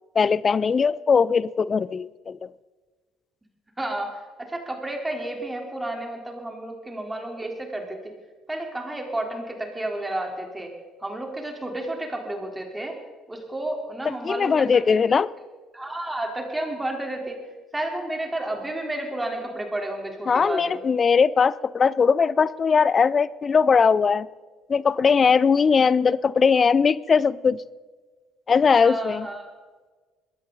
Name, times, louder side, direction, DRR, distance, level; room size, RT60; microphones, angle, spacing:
voice 1, 0.1-2.5 14.2-15.3 20.3-24.3 24.7-27.6 28.5-29.3, left 5 dB, 40° left, 21 dB, 0.5 m, -20 dB
voice 2, 3.8-8.0 8.5-10.7 11.0-13.0 13.3-15.0 15.7-17.4 17.7-20.8 28.8-29.5, right 1 dB, 15° right, 2 dB, 3.7 m, -31 dB
21.0 x 15.0 x 4.0 m, 1.4 s
hypercardioid pair, 55°, 0 cm